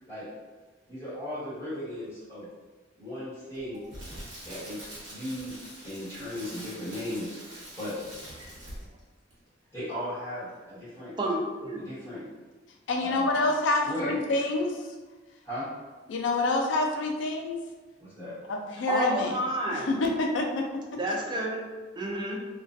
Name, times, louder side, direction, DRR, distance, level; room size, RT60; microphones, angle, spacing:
voice 1, 0.9-2.5 3.0-3.8 4.4-4.8 5.0-5.6 5.8-7.4 7.8-7.9 9.7-11.1 11.8-12.3 13.0-13.4 13.8-14.2 15.4-15.7 18.0-18.3, left 1 dB, 15° left, -14 dB, 1.3 m, -36 dB
Crackle, 3.6-9.0 9.3-9.5, right 1 dB, 85° right, 1.0 m, -44 dB
voice 2, 11.2-11.8 18.9-19.9 20.9-21.6 22.0-22.4, right 1 dB, 25° right, -1 dB, 0.3 m, -30 dB
voice 3, 12.9-14.8 16.1-17.6 18.5-19.3 19.7-20.7, left 2 dB, 70° left, 2 dB, 0.4 m, -27 dB
2.3 x 2.2 x 2.5 m, 1.3 s
head